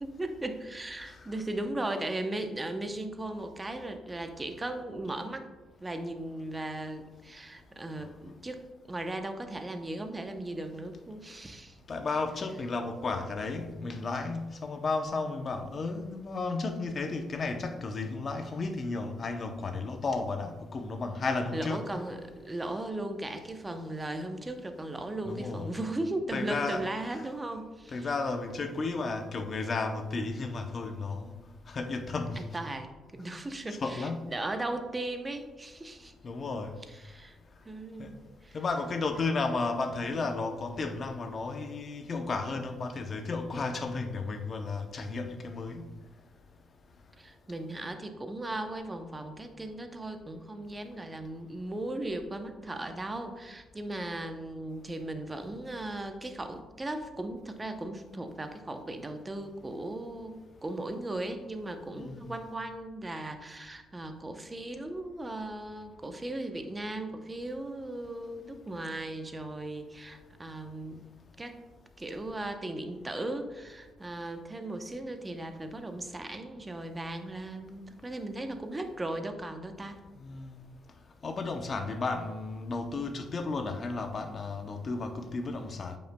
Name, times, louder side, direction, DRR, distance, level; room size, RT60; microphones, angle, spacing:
voice 1, 0.0-5.5 5.8-8.6 8.9-11.8 21.5-28.1 32.4-36.1 36.9-37.4 37.6-38.6 47.2-71.0 71.4-71.6 72.0-80.0, right 1 dB, 20° right, 0.7 m, -37 dB
voice 2, 11.9-21.9 25.2-25.7 26.3-26.8 27.9-31.3 31.7-32.4 33.8-34.2 36.2-36.7 38.0-38.1 38.5-45.9 61.9-62.3 80.2-80.6 81.2-86.0, left 3 dB, 45° left, 0.7 m, -33 dB
8.8 x 5.4 x 2.2 m
cardioid pair, 90°, 0 cm